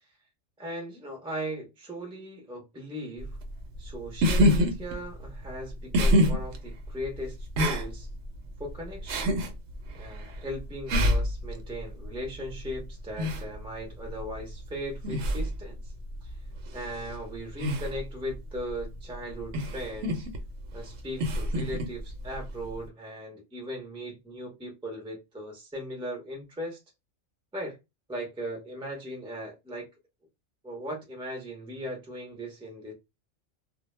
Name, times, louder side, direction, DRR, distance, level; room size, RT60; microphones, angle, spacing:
voice 1, 0.6-3.4 3.8-8.1 8.6-9.2 9.9-15.9 16.2-16.4 16.7-20.3 20.7-26.8 27.5-27.8 28.1-29.9 30.6-32.9, equal, 5° right, 0.5 m, -38 dB
sound 1, 3.2-22.9, equal, 70° right, 0.8 m, -29 dB
2.2 x 2.0 x 3.0 m
omnidirectional pair, 1.3 m